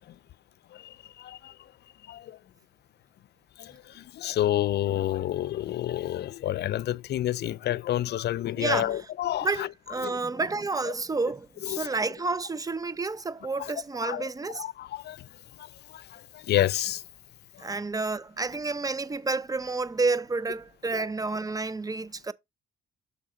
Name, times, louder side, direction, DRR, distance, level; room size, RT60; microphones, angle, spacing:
voice 1, 0.7-1.5 2.1-2.4 3.6-9.7 10.0-10.2 11.7-11.9 13.6-13.7 14.0-14.3 14.5-15.2 15.9-17.0 17.6-17.7 20.9-21.0, left 13 dB, 55° left, 0.4 m, -29 dB
voice 2, 8.6-9.1 9.4-14.6 17.6-22.3, right 3 dB, 20° right, 0.5 m, -30 dB
6.4 x 3.7 x 4.9 m
cardioid pair, 90°, 20 cm